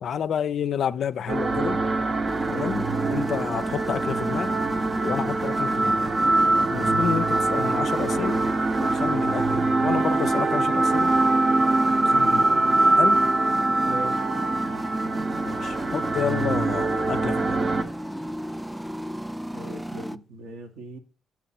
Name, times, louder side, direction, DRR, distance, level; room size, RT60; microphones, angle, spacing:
voice 1, 0.0-1.8 2.5-4.6 5.0-6.0 6.7-8.4 8.8-11.1 12.0-13.3 15.4-17.6, left 8 dB, 65° left, 0.3 m, -30 dB
sound 1, 1.3-17.8, right 2 dB, 45° right, 0.8 m, -23 dB
sound 2, 2.2-20.2, equal, 5° right, 0.4 m, -34 dB
voice 2, 13.8-14.3 19.5-21.0, right 2 dB, 75° right, 1.2 m, -39 dB
7.3 x 5.8 x 4.2 m
hypercardioid pair, 45°, 0 cm